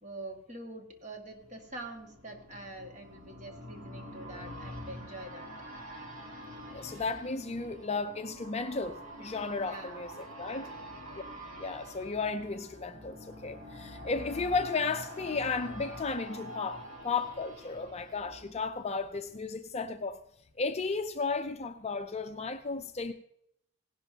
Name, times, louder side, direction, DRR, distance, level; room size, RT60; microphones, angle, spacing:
voice 1, 0.0-5.5 9.6-10.0 10.4-10.8, right 2 dB, 35° right, 1.8 m, -45 dB
sound 1, 1.3-19.1 19.4-19.5, equal, 70° right, 2.5 m, -46 dB
voice 2, 6.7-10.7 11.1-11.2 11.6-20.2 20.6-23.1, left 4 dB, 30° left, 0.5 m, -34 dB
17.5 x 11.5 x 2.8 m
head